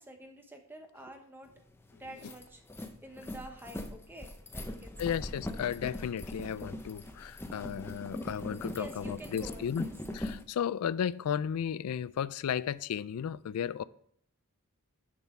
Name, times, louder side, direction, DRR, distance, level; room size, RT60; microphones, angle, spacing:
voice 1, 0.0-1.5 1.9-2.6 3.0-5.1 8.8-9.9, right 1 dB, 10° right, 0.9 m, -48 dB
sound 1, 1.6-1.7 2.0-10.4, left 1 dB, 10° left, 0.5 m, -41 dB
voice 2, 5.0-9.9 10.1-13.8, left 8 dB, 85° left, 0.3 m, -34 dB
6.8 x 6.7 x 5.9 m
head